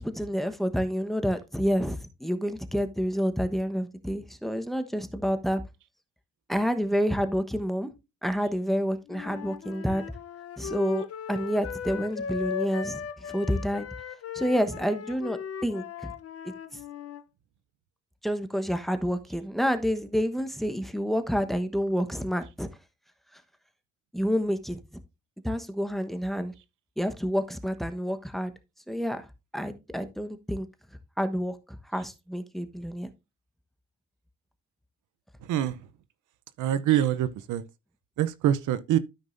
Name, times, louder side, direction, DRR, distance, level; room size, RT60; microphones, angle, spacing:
voice 1, 0.0-5.6 6.5-7.9 8.2-10.0 10.6-13.0 13.3-13.9 14.3-16.1 18.2-22.7 24.1-24.8 25.4-26.5 27.0-28.5 28.9-29.2 29.5-30.7 31.2-33.1, equal, ahead, 1.1 m, -28 dB
Wind instrument woodwind instrument, 9.1-17.2, left 7 dB, 50° left, 0.9 m, -37 dB
voice 2, 35.4-35.8 36.6-37.6 38.2-39.0, right 11 dB, 80° right, 0.7 m, -25 dB
13.0 x 5.3 x 2.6 m
cardioid pair, 90°, 30 cm